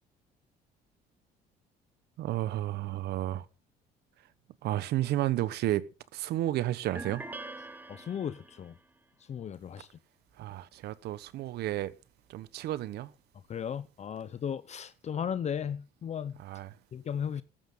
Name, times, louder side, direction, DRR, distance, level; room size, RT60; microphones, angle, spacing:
voice 1, 2.2-3.5 4.6-5.8 6.1-7.2 10.4-11.9 12.3-13.1 16.4-16.8, right 14 dB, 75° right, 1.2 m, -32 dB
sound 1, 6.9-8.7, right 2 dB, 10° right, 2.0 m, -43 dB
voice 2, 7.9-8.7 9.3-9.9 13.5-16.4 16.9-17.4, left 8 dB, 40° left, 0.8 m, -35 dB
14.0 x 13.0 x 3.8 m
cardioid pair, 110°, 17 cm